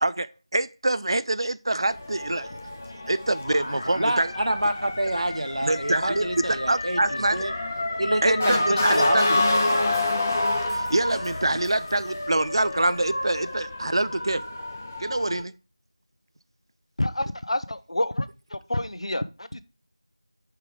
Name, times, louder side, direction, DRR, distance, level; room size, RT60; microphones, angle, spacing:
voice 1, 0.0-2.5 3.1-4.3 5.6-7.4 8.2-9.5 10.7-14.4 15.0-15.5, right 2 dB, 55° right, 0.3 m, -25 dB
Motor vehicle (road) / Siren, 1.9-15.4, left 2 dB, 20° left, 0.5 m, -28 dB
voice 2, 4.0-7.5 8.0-9.4, right 1 dB, 80° right, 0.8 m, -27 dB
sound 1, 8.9-12.3, equal, 5° left, 1.3 m, -46 dB
voice 3, 17.0-19.6, left 1 dB, 80° left, 0.7 m, -28 dB
5.8 x 4.9 x 4.9 m
figure-of-eight pair, 175°, 3 cm